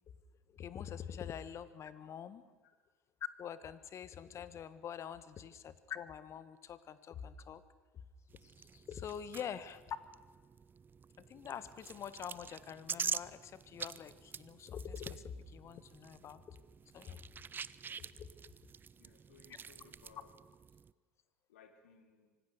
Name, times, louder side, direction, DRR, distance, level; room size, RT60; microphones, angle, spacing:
voice 1, 0.5-2.4 3.4-7.6 8.4-10.0 11.2-16.6 16.9-17.2 18.2-18.3, left 8 dB, 40° left, 14 dB, 1.5 m, -45 dB
sound 1, 8.3-20.9, right 6 dB, 30° right, 0.6 m, -46 dB
voice 2, 19.0-20.3 21.5-22.3, left 5 dB, 80° left, 7 dB, 2.7 m, -62 dB
25.5 x 18.5 x 6.7 m, 1.4 s
hypercardioid pair, 70°, 7 cm